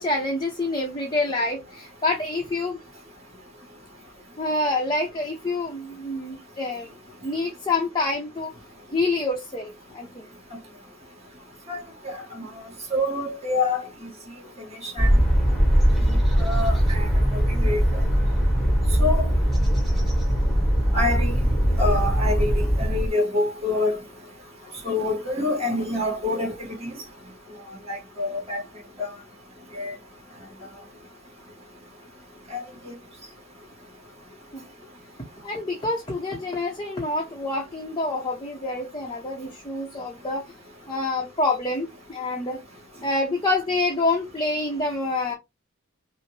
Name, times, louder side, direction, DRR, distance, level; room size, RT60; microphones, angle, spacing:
voice 1, 0.0-2.8 4.4-6.9 7.2-8.5 8.9-10.3 34.5-34.6 35.4-40.4 40.9-42.6 43.0-45.3, left 2 dB, 20° left, 0.7 m, -27 dB
voice 2, 12.0-12.4 12.9-13.8 14.8-15.1 16.1-17.1 17.5-17.8 19.0-19.3 20.9-21.4 21.8-24.0 24.8-26.5 26.8-26.9 27.9-28.6 29.0-29.1 29.7-29.9 32.5-32.6, left 2 dB, 30° right, 1.8 m, -26 dB
sound 1, 15.0-23.1, equal, ahead, 1.2 m, -21 dB
5.5 x 2.1 x 3.2 m
head